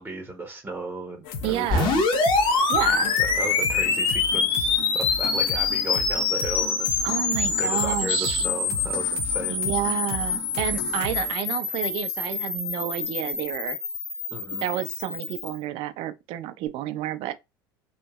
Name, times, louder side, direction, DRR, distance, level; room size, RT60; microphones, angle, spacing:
voice 1, 0.0-1.9 3.2-7.0 7.6-9.6 14.3-14.7, right 2 dB, 15° right, 0.7 m, -35 dB
sound 1, 1.2-11.3, left 5 dB, 60° left, 0.7 m, -36 dB
voice 2, 1.4-2.0 2.7-3.1 7.0-8.5 9.5-13.8 14.6-17.3, right 13 dB, 50° right, 0.4 m, -30 dB
sound 2, 1.7-15.5, left 4 dB, 45° left, 1.1 m, -25 dB
2.9 x 2.5 x 2.3 m
hypercardioid pair, 75°, 12 cm